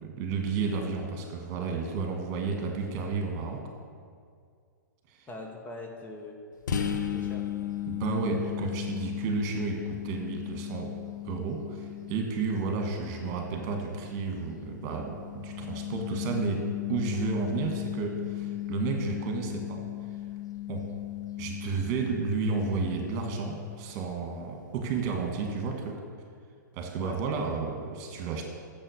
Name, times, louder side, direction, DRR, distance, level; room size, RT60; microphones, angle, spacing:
voice 1, 0.0-3.6 5.1-5.3 7.9-10.9 11.2-16.6 16.9-19.8 20.7-20.9 21.4-26.0 26.7-28.5, right 4 dB, 40° right, 2 dB, 1.9 m, -32 dB
voice 2, 5.3-6.4 6.8-7.5 27.0-27.2, left 2 dB, 20° left, 1 dB, 1.2 m, -42 dB
sound 1, 6.7-24.2, left 11 dB, 70° left, 0.9 m, -36 dB
8.8 x 7.2 x 6.6 m, 2.2 s
hypercardioid pair, 115°, 10 cm